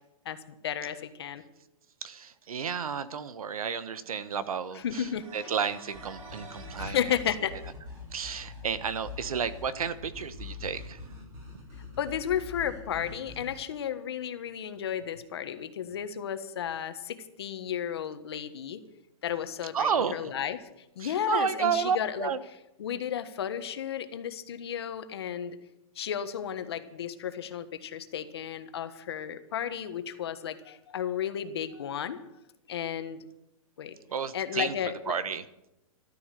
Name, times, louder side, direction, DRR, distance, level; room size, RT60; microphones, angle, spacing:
voice 1, 0.6-1.4 4.7-5.5 6.8-7.5 12.0-18.8 19.2-20.7 21.0-22.3 22.8-25.6 25.9-32.2 32.7-33.2 33.8-34.0 34.3-35.2, left 9 dB, 45° left, 10 dB, 1.4 m, -33 dB
voice 2, 2.0-5.0 5.3-7.0 8.1-11.0 19.7-20.2 21.0-22.4 34.1-34.7 35.1-35.4, right 7 dB, 85° right, 14 dB, 1.3 m, -31 dB
sound 1, 4.8-7.0, right 3 dB, 65° right, 5.1 m, -49 dB
sound 2, 5.9-13.6, left 4 dB, 15° right, 2.6 m, -44 dB
14.0 x 12.5 x 6.8 m, 0.88 s
hypercardioid pair, 175°, 18 cm